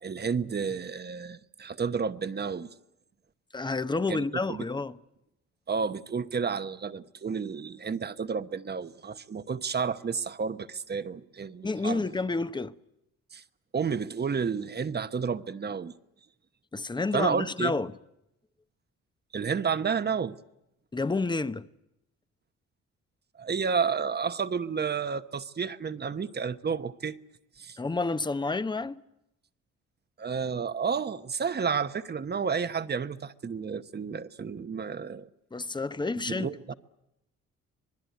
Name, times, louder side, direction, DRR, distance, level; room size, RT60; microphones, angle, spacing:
voice 1, 0.0-2.7 4.1-4.6 5.7-12.1 13.3-13.4 13.7-15.9 17.1-17.7 19.3-20.4 23.4-27.2 27.6-27.8 30.2-35.3 36.3-36.7, right 6 dB, 35° right, 1.1 m, -31 dB
voice 2, 3.5-5.0 11.6-12.7 16.7-17.9 20.9-21.6 27.8-29.0 35.5-36.7, left 3 dB, 15° left, 0.9 m, -30 dB
26.0 x 20.0 x 9.4 m
cardioid pair, 90°, 30 cm